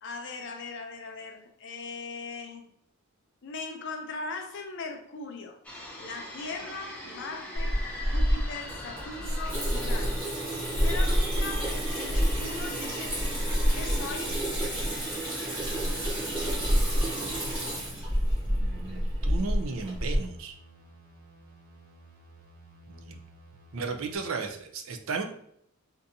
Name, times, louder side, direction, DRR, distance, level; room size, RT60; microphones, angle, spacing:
voice 1, 0.0-2.7 3.4-5.6 6.0-10.2 10.8-13.4 13.7-14.4, left 4 dB, 55° left, 0.5 m, -39 dB
sound 1, 5.6-17.8, equal, 5° left, 0.5 m, -42 dB
Water tap faucet / Sink (filling or washing), 7.6-20.2, equal, 25° right, 1.5 m, -28 dB
sound 2, 16.5-24.2, right 2 dB, 90° right, 0.9 m, -54 dB
voice 2, 18.5-20.5 22.9-23.2 23.7-25.2, right 4 dB, 65° right, 0.5 m, -35 dB
3.6 x 2.6 x 2.6 m
head